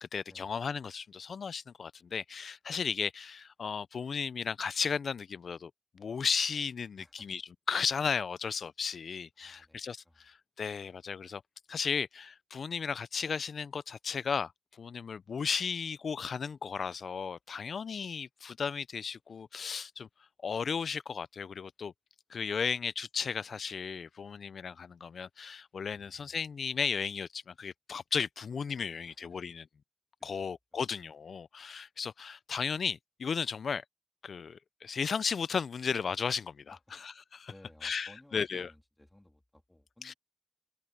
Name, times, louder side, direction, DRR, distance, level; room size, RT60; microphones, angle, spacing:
voice 1, 0.0-7.4 7.7-11.4 11.7-20.1 20.4-21.9 22.3-29.7 30.2-33.8 34.2-37.5 37.8-38.7 40.0-40.1, left 6 dB, 70° left, 0.3 m, -35 dB
voice 2, 7.0-7.3 9.4-10.3 25.9-26.4 29.1-29.2 30.4-30.5 30.7-30.8 36.7-36.8 37.5-40.2, left 1 dB, 10° left, 3.1 m, -59 dB
wide cardioid pair, 145°, 0 cm